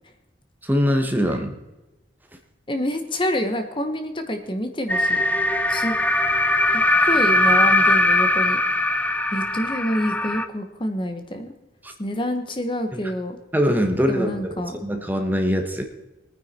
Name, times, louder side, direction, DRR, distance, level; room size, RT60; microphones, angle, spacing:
voice 1, 0.6-1.6 11.8-11.9 13.5-15.8, equal, 10° right, 5 dB, 1.2 m, -22 dB
voice 2, 2.7-5.2 5.7-5.9 6.7-8.6 9.3-11.5 12.0-13.4 14.1-14.8, equal, 25° left, 6 dB, 1.2 m, -27 dB
sound 1, 4.9-10.4, left 2 dB, 10° left, 0.5 m, -20 dB
21.5 x 9.6 x 4.3 m, 1.0 s
head